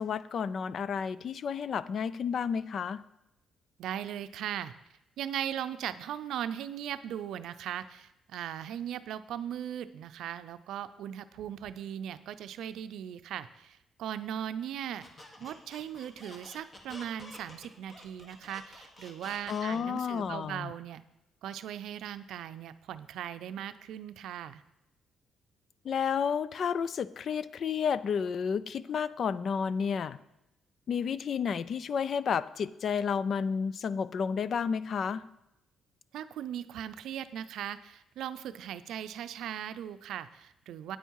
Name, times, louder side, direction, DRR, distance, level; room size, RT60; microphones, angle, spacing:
voice 1, 0.0-3.0 19.5-20.7 25.8-30.2 30.9-35.3, left 6 dB, 45° left, 17 dB, 0.4 m, -31 dB
voice 2, 3.8-4.7 5.2-15.1 15.4-21.0 21.4-24.6 36.1-41.0, right 10 dB, 80° right, 12 dB, 0.5 m, -38 dB
Squeak, 15.0-20.1, left 1 dB, 20° left, 1.5 m, -49 dB
9.2 x 9.1 x 4.7 m, 0.88 s
cardioid pair, 145°, 0 cm